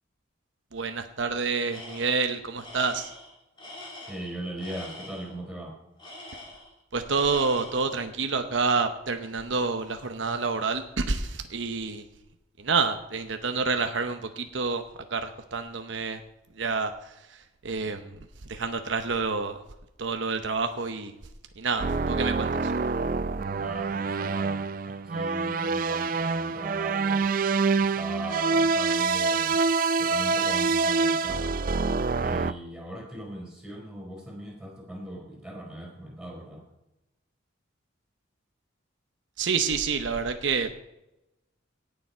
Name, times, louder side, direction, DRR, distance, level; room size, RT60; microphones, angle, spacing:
voice 1, 0.7-3.1 6.9-12.0 12.6-14.8 15.1-16.2 16.5-19.6 20.0-21.1 21.6-22.7 39.4-40.8, right 4 dB, 70° right, 7 dB, 0.9 m, -28 dB
Tools, 1.7-2.3 2.6-5.3 6.0-6.8 7.1-7.9, left 1 dB, 25° left, 2.6 m, -44 dB
voice 2, 4.1-5.7 23.6-27.3 27.7-29.6 30.0-31.6 32.2-36.6, right 1 dB, 5° right, -2 dB, 4.0 m, -39 dB
sound 1, 21.8-32.5, right 4 dB, 45° right, 0.4 m, -26 dB
17.5 x 7.1 x 4.4 m, 0.91 s
head